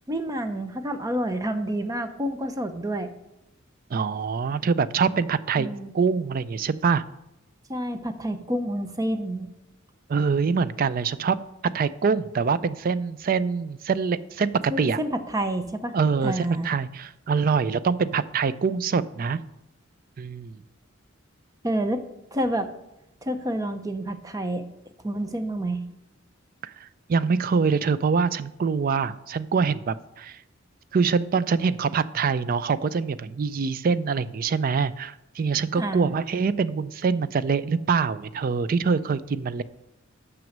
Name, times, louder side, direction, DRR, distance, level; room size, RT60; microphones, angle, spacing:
voice 1, 0.1-3.1 5.6-5.9 7.7-9.5 14.7-16.0 16.2-16.7 21.6-22.0 22.3-22.7 23.2-24.6 25.0-25.8 35.7-36.1, right 1 dB, 15° right, 8 dB, 0.7 m, -28 dB
voice 2, 3.9-7.0 10.1-11.4 11.7-15.0 15.9-19.4 20.2-20.6 26.6-30.4 30.9-39.6, right 5 dB, 45° right, 16 dB, 0.4 m, -24 dB
6.2 x 6.1 x 7.2 m, 0.87 s
head